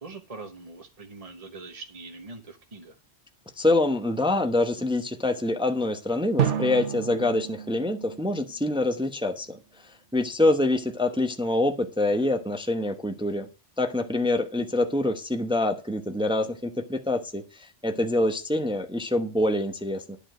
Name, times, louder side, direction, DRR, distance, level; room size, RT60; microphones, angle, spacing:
voice 1, 0.0-3.0 10.4-10.8, right 3 dB, 30° right, 4 dB, 1.1 m, -43 dB
voice 2, 3.6-9.6 10.1-13.5 13.8-20.2, left 2 dB, 5° right, 6 dB, 0.9 m, -25 dB
Drum, 6.4-9.1, right 9 dB, 75° right, 1.4 m, -31 dB
11.5 x 5.0 x 7.8 m, 0.33 s
omnidirectional pair, 1.2 m